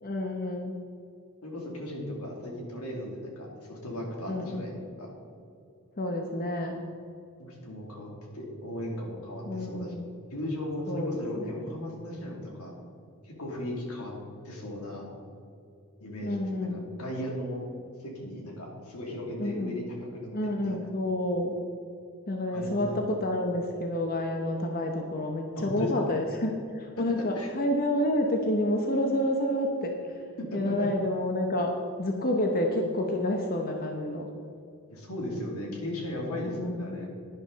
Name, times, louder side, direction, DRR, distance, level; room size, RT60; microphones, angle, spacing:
voice 1, 0.0-0.8 4.3-4.7 6.0-6.8 9.5-10.1 10.9-11.6 16.2-16.8 19.4-19.8 20.3-21.6 22.3-30.2 30.5-34.3 36.3-37.0, left 1 dB, 45° left, 2 dB, 0.9 m, -29 dB
voice 2, 1.4-5.1 7.4-9.9 10.3-12.7 13.2-14.1 14.4-15.0 16.0-17.6 18.0-20.9 22.5-23.0 25.5-26.1 27.3-27.5 30.5-30.9 34.9-37.1, left 1 dB, 85° left, -1 dB, 2.8 m, -36 dB
11.5 x 10.5 x 4.0 m, 2.6 s
head